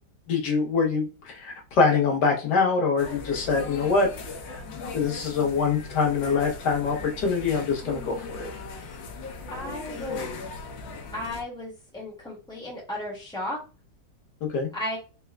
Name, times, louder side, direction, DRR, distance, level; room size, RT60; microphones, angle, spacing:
voice 1, 0.3-4.1 4.4-4.6 4.9-8.5 14.5-14.7, left 4 dB, 65° left, 1 dB, 1.6 m, -24 dB
sound 1, 3.0-11.4, left 4 dB, 90° left, 1.5 m, -38 dB
voice 2, 9.5-10.4 11.1-13.6 14.7-15.0, left 1 dB, ahead, -5 dB, 1.9 m, -34 dB
4.3 x 3.6 x 2.3 m, 0.33 s
omnidirectional pair, 2.0 m